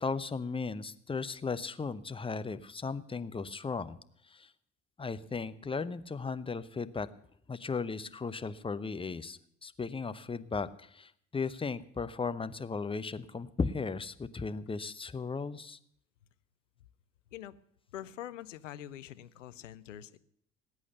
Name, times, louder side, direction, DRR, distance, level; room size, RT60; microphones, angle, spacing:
voice 1, 0.0-4.0 4.3-4.5 5.0-7.1 7.5-15.8, left 4 dB, 15° left, 13 dB, 0.7 m, -36 dB
voice 2, 17.9-20.2, left 12 dB, 75° left, 14 dB, 0.7 m, -44 dB
19.0 x 8.6 x 7.0 m, 0.68 s
figure-of-eight pair, 55°, 38 cm